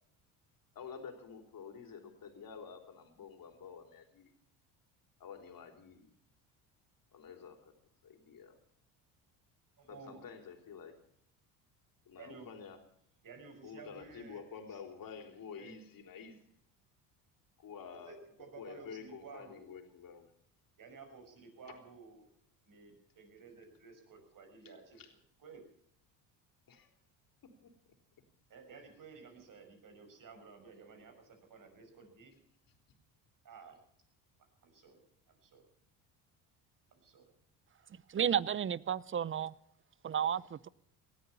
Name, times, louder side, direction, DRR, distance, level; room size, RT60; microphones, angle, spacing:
voice 1, 0.7-4.3 5.2-6.1 7.1-7.8 8.0-8.6 9.9-11.0 12.1-12.8 13.6-16.4 17.6-18.2 18.6-20.3 21.7-21.8 24.6-25.1 26.7-26.9 27.4-27.7 32.7-32.8, left 6 dB, 50° left, 5 dB, 3.7 m, -49 dB
voice 2, 9.8-10.3 12.2-12.5 13.2-14.4 14.7-14.8 15.6-15.7 17.9-19.7 20.8-22.3 22.6-25.0 25.4-25.6 28.5-32.4 33.4-33.8 34.6-35.0 35.3-35.6 36.9-37.3, right 4 dB, 45° right, 5 dB, 6.0 m, -54 dB
voice 3, 38.1-39.5 40.0-40.7, right 8 dB, 30° right, 21 dB, 0.6 m, -32 dB
18.5 x 13.5 x 5.7 m, 0.69 s
supercardioid pair, 75°, 44 cm